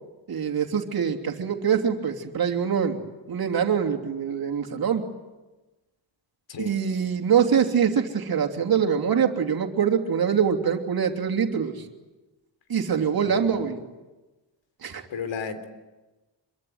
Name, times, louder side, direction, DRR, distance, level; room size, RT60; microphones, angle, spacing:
voice 1, 0.3-3.0 3.3-5.0 6.6-11.8 12.7-13.8 14.8-15.0, right 7 dB, 50° right, 4 dB, 3.1 m, -24 dB
voice 2, 13.2-13.8 15.1-15.7, left 6 dB, 70° left, 9 dB, 3.7 m, -34 dB
26.5 x 23.0 x 9.4 m, 1.1 s
wide cardioid pair, 160°, 46 cm